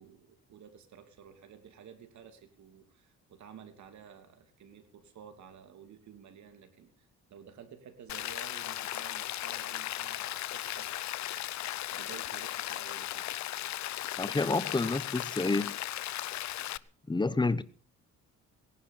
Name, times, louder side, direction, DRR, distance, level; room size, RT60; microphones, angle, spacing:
voice 1, 0.0-13.3, right 8 dB, 70° right, 3.0 m, -53 dB
Rain, 8.1-16.8, left 14 dB, 70° left, 0.6 m, -37 dB
voice 2, 14.2-15.8 17.1-17.6, left 3 dB, 15° left, 1.0 m, -29 dB
18.5 x 11.0 x 5.6 m
cardioid pair, 90°, 30 cm